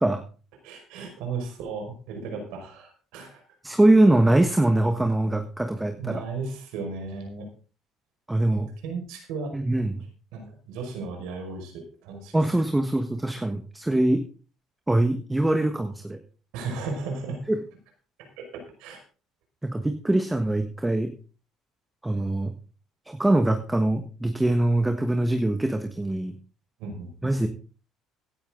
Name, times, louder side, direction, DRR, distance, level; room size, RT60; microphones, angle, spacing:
voice 1, 0.6-3.4 6.0-7.5 8.8-9.5 10.3-12.4 16.5-17.4 18.4-19.0 26.8-27.1, right 4 dB, 85° right, 3 dB, 5.3 m, -35 dB
voice 2, 3.6-6.2 8.3-8.7 9.5-10.0 12.3-14.2 14.9-16.2 17.5-17.6 19.6-21.1 22.0-22.5 23.1-26.3 27.2-27.5, right 1 dB, 10° right, 7 dB, 1.3 m, -23 dB
15.5 x 11.5 x 3.8 m, 0.37 s
cardioid pair, 110°, 0 cm